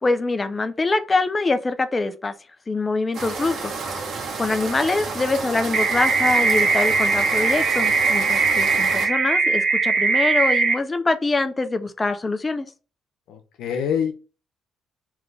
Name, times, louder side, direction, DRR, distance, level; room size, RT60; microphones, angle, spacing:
voice 1, 0.0-2.3 2.7-3.7 4.4-12.7, left 3 dB, 25° left, 8 dB, 0.5 m, -24 dB
sound 1, 3.1-9.1, right 4 dB, 65° right, 1.4 m, -31 dB
sound 2, 5.7-10.7, right 4 dB, 40° right, 1.2 m, -20 dB
voice 2, 13.3-14.1, left 8 dB, 85° left, 6 dB, 0.9 m, -25 dB
3.6 x 3.0 x 3.4 m, 0.33 s
cardioid pair, 90°, 0 cm